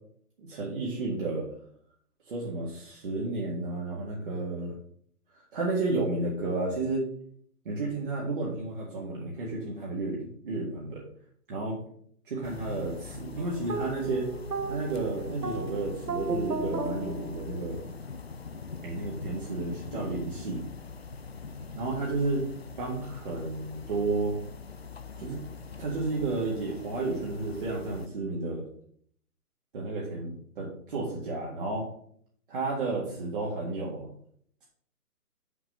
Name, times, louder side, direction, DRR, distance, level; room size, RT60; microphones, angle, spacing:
voice 1, 0.4-1.5 2.3-4.8 5.5-7.0 7.7-11.0 11.5-11.8 12.3-14.3 14.7-17.8 18.8-20.6 21.8-22.4 22.8-24.3 25.2-25.4 25.8-28.6 29.7-31.8 32.5-34.1, right 3 dB, 35° right, -5 dB, 1.8 m, -32 dB
sound 1, 12.4-28.1, left 4 dB, 45° left, 0.5 m, -42 dB
sound 2, 13.4-18.0, right 3 dB, 80° right, 1.2 m, -35 dB
6.1 x 5.3 x 6.3 m, 0.63 s
figure-of-eight pair, 150°, 46 cm